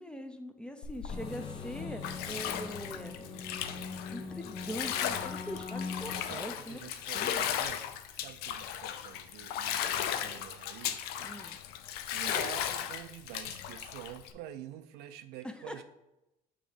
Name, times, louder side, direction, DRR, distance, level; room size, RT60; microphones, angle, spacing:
voice 1, 0.0-3.2 4.1-6.8 7.1-7.5 11.2-11.6 15.4-15.8, equal, 5° left, 7 dB, 0.7 m, -42 dB
Bathtub (filling or washing), 0.8-14.3, left 10 dB, 70° left, 0.5 m, -36 dB
sound 1, 1.1-6.2, left 4 dB, 35° left, 1.0 m, -41 dB
voice 2, 6.2-11.2 12.1-15.8, right 11 dB, 75° right, 10 dB, 0.5 m, -47 dB
6.3 x 3.0 x 5.0 m, 0.91 s
supercardioid pair, 70°, 17 cm